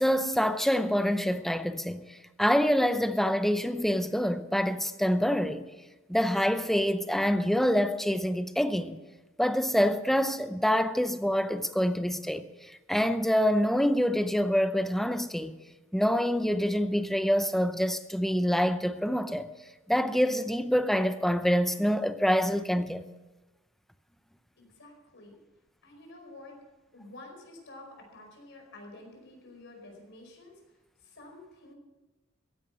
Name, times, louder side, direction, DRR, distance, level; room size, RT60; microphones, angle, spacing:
voice 1, 0.0-5.6 6.1-9.0 9.4-15.6 15.9-19.5 19.9-23.1, equal, ahead, 0.7 m, -26 dB
voice 2, 24.6-25.4 25.8-26.6 26.9-30.6 31.0-31.8, left 2 dB, 65° left, 5.0 m, -49 dB
15.5 x 10.5 x 6.5 m
head